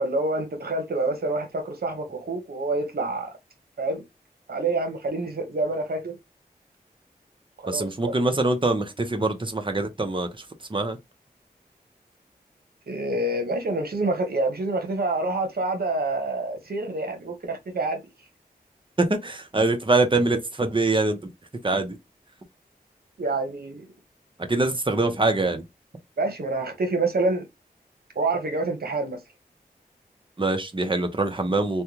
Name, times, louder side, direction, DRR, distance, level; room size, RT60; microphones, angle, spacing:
voice 1, 0.0-3.3 3.8-4.0 4.5-6.1 7.6-8.1 12.9-18.0 23.2-23.8 26.2-27.4 28.1-29.2, right 2 dB, 75° right, 1.1 m, -27 dB
voice 2, 7.7-10.4 10.7-11.0 19.0-21.2 21.6-22.0 24.5-25.6 30.4-31.8, right 2 dB, 30° right, 0.9 m, -24 dB
3.4 x 2.3 x 2.9 m
cardioid pair, 50°, 16 cm